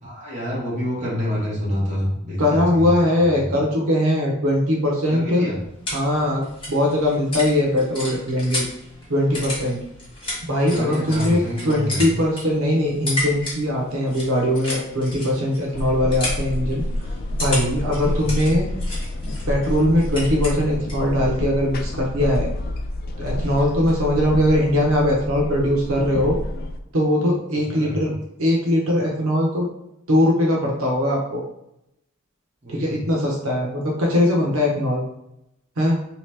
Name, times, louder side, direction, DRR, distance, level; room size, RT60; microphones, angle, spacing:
voice 1, 0.0-2.9 3.2-3.6 5.1-5.6 10.6-12.1 18.0-18.3 27.8-28.2 32.6-33.0, equal, 35° right, -5 dB, 1.2 m, -27 dB
voice 2, 2.4-5.4 5.9-6.4 6.7-8.7 9.1-9.8 10.4-16.8 17.4-18.7 19.2-22.5 23.2-26.4 26.9-28.1 28.4-29.7 30.1-31.4 32.7-35.0 35.8-36.0, left 1 dB, 80° right, -2 dB, 0.8 m, -21 dB
sound 1, 5.2-21.1, left 1 dB, 25° left, 1.2 m, -33 dB
sound 2, 15.7-26.8, left 1 dB, 45° left, 0.3 m, -28 dB
3.1 x 2.9 x 3.3 m, 0.83 s
head